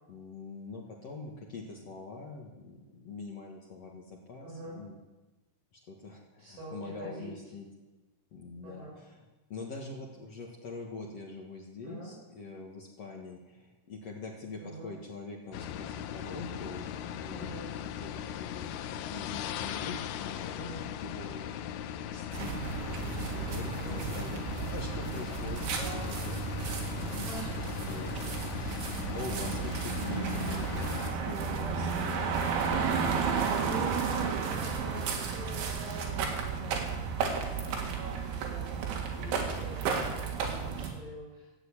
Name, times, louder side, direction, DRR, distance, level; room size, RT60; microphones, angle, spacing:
voice 1, 0.1-5.0 5.7-7.7 8.3-21.5 22.1-26.4 27.1-32.2, left 3 dB, 65° left, -1 dB, 1.6 m, -44 dB
voice 2, 4.4-4.8 6.4-7.3 8.6-8.9 11.8-12.1 14.6-14.9 17.3-17.7 20.6-20.8 23.7-24.0 25.8-26.1 27.3-27.5 30.3-30.6 33.2-36.8 37.3-41.5, right 1 dB, 60° right, -6 dB, 7.9 m, -44 dB
sound 1, 15.5-31.1, left 10 dB, 90° left, 2.1 m, -39 dB
sound 2, 22.3-40.9, right 5 dB, 80° right, 4.1 m, -33 dB
15.0 x 8.3 x 8.6 m, 1.1 s
omnidirectional pair, 5.3 m